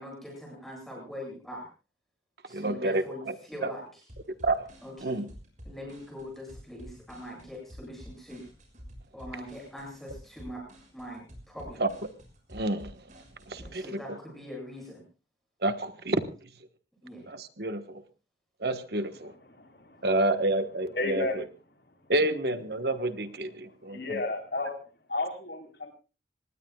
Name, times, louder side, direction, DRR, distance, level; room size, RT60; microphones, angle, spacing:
voice 1, 0.0-1.7 2.5-4.0 4.8-5.2 5.6-8.5 9.1-10.6 10.9-11.8 13.6-15.0 17.0-17.3 22.1-22.5, left 1 dB, ahead, -1 dB, 7.8 m, -42 dB
voice 2, 2.5-3.3 3.6-3.7 4.4-4.7 5.0-5.3 11.8-11.9 12.5-13.0 13.5-14.2 15.6-16.5 17.3-18.0 18.6-19.3 20.0-21.4 22.1-24.2, right 2 dB, 60° right, 9 dB, 1.3 m, -29 dB
sound 1, 4.1-13.7, equal, 45° right, 6.4 m, -49 dB
voice 3, 19.5-20.1 20.9-21.4 23.9-24.8 25.1-25.9, left 2 dB, 65° left, 3 dB, 4.1 m, -32 dB
26.5 x 19.5 x 2.3 m, 0.33 s
head